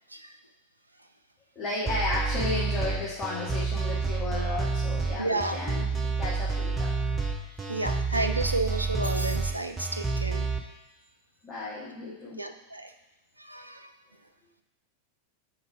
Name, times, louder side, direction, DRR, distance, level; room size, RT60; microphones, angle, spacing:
voice 1, 1.5-5.9 6.2-6.9 11.4-12.4, left 2 dB, 20° left, -8 dB, 1.5 m, -33 dB
sound 1, 1.9-10.6, right 4 dB, 15° right, 0.8 m, -29 dB
voice 2, 5.2-5.6 7.7-10.5 12.4-12.9 13.4-13.9, right 2 dB, 85° right, 6 dB, 0.4 m, -31 dB
4.4 x 4.2 x 5.7 m, 1.1 s
figure-of-eight pair, 90°, 0 cm